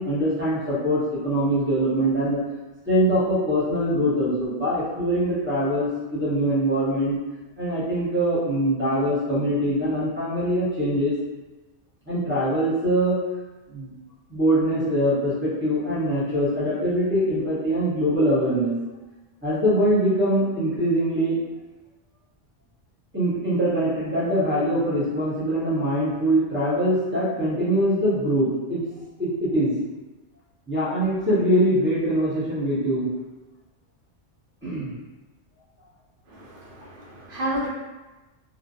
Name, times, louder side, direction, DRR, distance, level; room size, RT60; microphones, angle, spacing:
voice 1, 0.0-2.4 2.9-7.2 7.6-11.1 12.1-13.2 13.7-13.9 14.3-18.8 19.4-21.4 23.1-28.8 29.2-29.7 30.7-33.1 34.6-34.9, equal, 10° right, -10 dB, 0.7 m, -23 dB
voice 2, 36.3-37.7, equal, 60° right, -5 dB, 0.6 m, -31 dB
2.5 x 2.1 x 2.6 m, 1.1 s
omnidirectional pair, 1.2 m